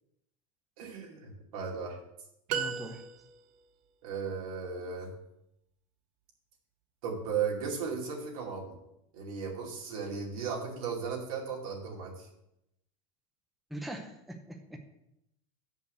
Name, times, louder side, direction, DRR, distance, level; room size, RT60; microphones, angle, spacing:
voice 1, 0.8-2.0 4.0-5.1 7.0-8.8 9.1-12.3, right 6 dB, 85° right, -2 dB, 2.5 m, -36 dB
voice 2, 2.5-3.0 13.7-14.8, right 1 dB, ahead, 3 dB, 0.6 m, -41 dB
sound 1, 2.5-3.6, right 7 dB, 45° right, 0.6 m, -35 dB
6.4 x 5.4 x 6.5 m, 0.83 s
supercardioid pair, 155°, 18 cm